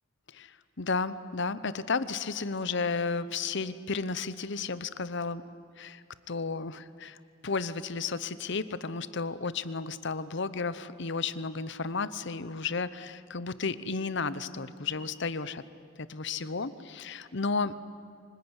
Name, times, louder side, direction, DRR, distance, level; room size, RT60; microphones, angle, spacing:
voice 1, 0.3-5.4 5.8-7.2 7.4-15.6 16.0-17.7, left 4 dB, 60° left, 15 dB, 0.9 m, -33 dB
25.0 x 20.5 x 9.9 m, 2.3 s
head